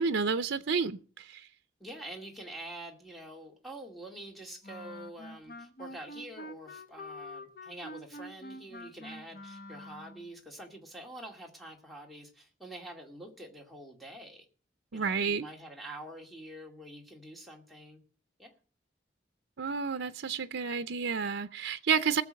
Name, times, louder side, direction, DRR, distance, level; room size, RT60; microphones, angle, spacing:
voice 1, 0.0-1.5 14.9-15.5 19.6-22.2, right 5 dB, 80° right, 0.6 m, -30 dB
voice 2, 1.8-14.5 14.9-18.0 18.4-18.5, right 1 dB, ahead, 2.3 m, -46 dB
Wind instrument woodwind instrument, 4.6-10.3, left 1 dB, 50° left, 1.0 m, -46 dB
19.0 x 7.1 x 6.4 m
head